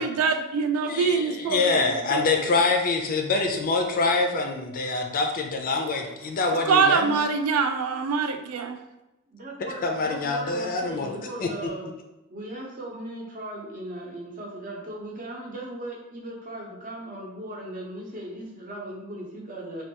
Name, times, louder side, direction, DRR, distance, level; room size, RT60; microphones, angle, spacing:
voice 1, 0.0-2.2 6.7-8.8, right 5 dB, 85° right, 7 dB, 0.3 m, -24 dB
voice 2, 0.8-7.2 9.6-11.7, left 3 dB, 40° left, 3 dB, 0.4 m, -25 dB
voice 3, 9.3-11.9 12.3-19.8, right 1 dB, 40° right, -2 dB, 0.7 m, -38 dB
3.3 x 2.3 x 2.8 m, 0.98 s
head